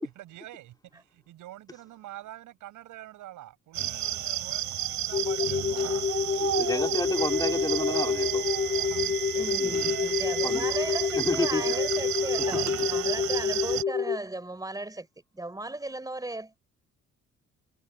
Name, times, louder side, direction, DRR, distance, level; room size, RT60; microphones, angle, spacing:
voice 1, 0.2-5.8 6.2-6.7 8.8-9.1 9.6-9.7, right 14 dB, 85° right, 6.4 m, -47 dB
sound 1, 3.7-13.8, right 12 dB, 70° right, 2.9 m, -31 dB
sound 2, 5.1-14.2, left 7 dB, 30° left, 0.8 m, -28 dB
voice 2, 6.6-8.4 9.6-9.9 10.4-10.7 11.2-11.7 12.5-12.9, left 2 dB, 15° left, 2.5 m, -31 dB
Wind instrument woodwind instrument, 7.0-13.0, right 7 dB, 35° right, 4.4 m, -44 dB
voice 3, 9.3-15.1 15.3-16.6, right 2 dB, 10° right, 4.5 m, -36 dB
cardioid pair, 90°, 30 cm